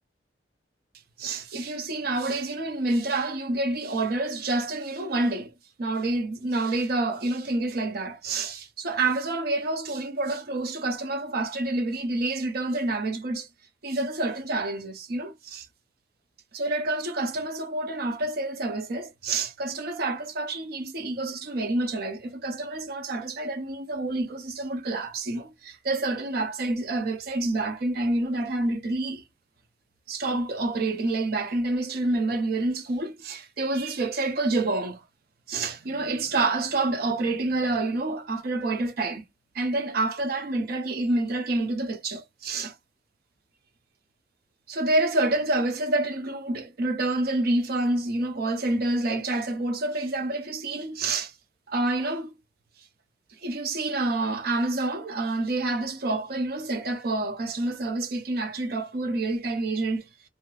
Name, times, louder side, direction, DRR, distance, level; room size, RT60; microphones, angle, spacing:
voice 1, 1.2-5.5 5.8-13.5 13.8-15.7 16.5-29.2 30.1-35.0 35.5-39.2 39.5-42.7 44.7-51.3 51.7-52.3 53.4-60.1, right 2 dB, 60° right, 0.6 m, -28 dB
2.7 x 2.3 x 3.2 m
head